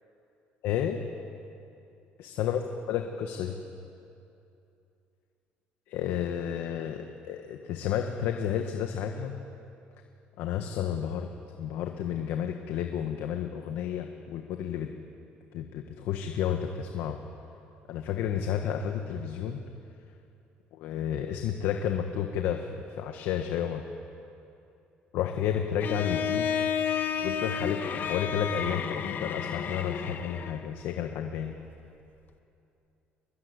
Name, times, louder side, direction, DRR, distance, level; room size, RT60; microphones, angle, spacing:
voice 1, 0.6-1.0 2.2-2.6 2.9-3.6 5.9-9.3 10.4-11.3 11.6-14.9 15.5-17.2 17.9-19.6 20.7-23.8 25.1-26.5 27.2-31.5, left 9 dB, 80° left, 4 dB, 1.5 m, -31 dB
Bowed string instrument, 25.8-30.7, left 7 dB, 55° left, 1.8 m, -31 dB
23.0 x 20.5 x 9.8 m, 2.7 s
cardioid pair, 105°, 4 cm